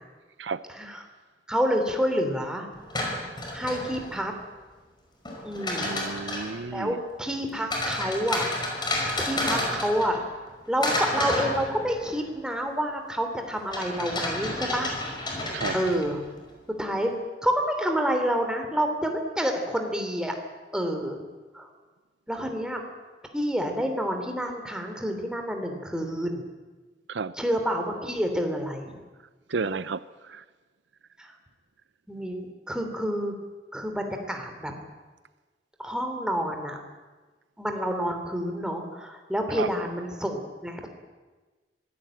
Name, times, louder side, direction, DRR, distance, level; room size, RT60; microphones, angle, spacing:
voice 1, 1.5-2.7 3.5-4.3 5.4-6.0 6.7-8.5 8.8-8.9 9.2-10.2 10.7-14.9 15.7-16.2 16.8-17.1 17.4-20.3 20.7-21.2 21.5-21.7 22.3-22.8 23.3-26.4 27.4-29.0 31.2-31.3 32.1-33.3 33.7-34.7 35.8-36.8 37.6-40.9, equal, 5° right, 4 dB, 3.0 m, -28 dB
sound 1, 2.7-4.3 5.2-6.6 7.7-10.5 10.8-12.2 13.7-16.3, left 1 dB, 25° left, 5.3 m, -30 dB
voice 2, 5.8-7.0 15.5-15.8 27.1-27.3 29.5-30.4 39.6-39.7, right 4 dB, 80° right, 15 dB, 0.7 m, -32 dB
24.5 x 16.0 x 8.9 m, 1.3 s
head